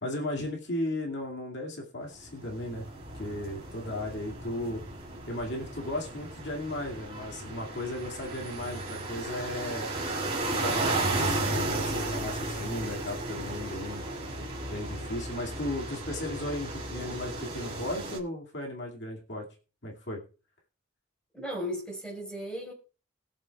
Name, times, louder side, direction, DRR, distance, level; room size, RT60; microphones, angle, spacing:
voice 1, 0.0-2.8 3.1-4.8 5.3-9.9 10.6-14.0 14.7-19.4 19.8-20.2, left 1 dB, 60° left, 2.2 m, -35 dB
sound 1, 2.2-18.2, right 2 dB, 30° right, 2.5 m, -34 dB
voice 2, 21.3-22.7, equal, 5° left, 4.6 m, -36 dB
21.0 x 7.2 x 2.3 m
head